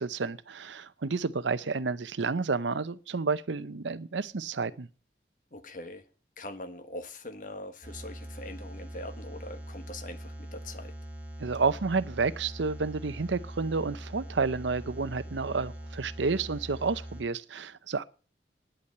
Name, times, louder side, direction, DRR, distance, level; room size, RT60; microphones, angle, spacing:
voice 1, 0.0-4.9 11.4-18.0, right 4 dB, 90° right, 0.7 m, -30 dB
voice 2, 5.5-6.0 6.4-10.9, left 1 dB, 45° left, 1.4 m, -42 dB
sound 1, 7.8-17.2, equal, 5° right, 2.9 m, -42 dB
10.0 x 8.5 x 8.0 m
head